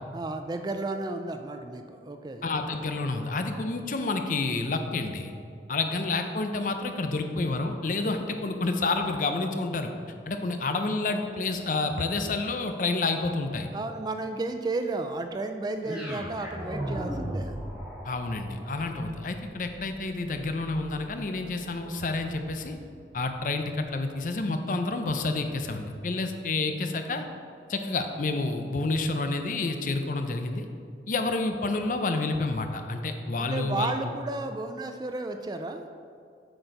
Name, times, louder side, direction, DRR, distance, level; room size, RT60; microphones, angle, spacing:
voice 1, 0.1-2.4 13.7-17.6 33.4-35.9, right 2 dB, 25° right, 7 dB, 0.3 m, -33 dB
voice 2, 2.4-5.3 5.7-9.9 10.3-13.7 18.0-22.8 23.1-27.2 27.7-30.6 31.1-33.9, left 3 dB, 50° left, 6 dB, 0.5 m, -29 dB
sound 1, 15.8-24.0, equal, 5° right, 1.2 m, -39 dB
7.7 x 4.4 x 5.2 m, 2.4 s
head